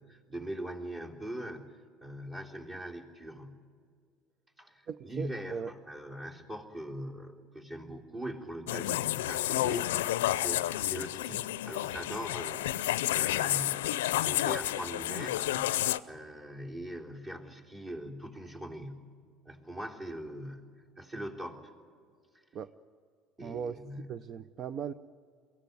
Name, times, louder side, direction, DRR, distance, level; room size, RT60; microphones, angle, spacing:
voice 1, 0.0-3.6 4.6-19.1 19.5-20.7 21.0-21.7 23.4-24.1, equal, 30° right, 0 dB, 3.6 m, -42 dB
voice 2, 4.9-5.7 22.5-22.7 23.4-24.9, right 7 dB, 50° right, 14 dB, 0.6 m, -38 dB
sound 1, 8.7-16.0, left 14 dB, 85° left, 0.5 m, -30 dB
23.0 x 16.5 x 9.4 m, 2.2 s
hypercardioid pair, 80°, 0 cm